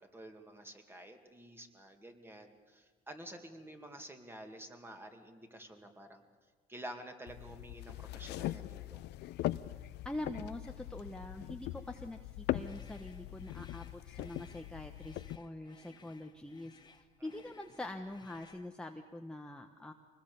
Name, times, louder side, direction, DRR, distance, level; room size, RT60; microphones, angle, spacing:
voice 1, 0.0-6.2 6.7-9.1 17.2-17.3, right 1 dB, 15° right, 5 dB, 2.5 m, -50 dB
sound 1, 7.3-15.4, left 15 dB, 80° left, 0.6 m, -41 dB
voice 2, 10.0-19.9, left 1 dB, 5° left, 3 dB, 1.1 m, -44 dB
sound 2, 12.6-18.7, left 5 dB, 25° left, 1.3 m, -62 dB
25.0 x 20.0 x 7.0 m, 1.4 s
cardioid pair, 110°, 17 cm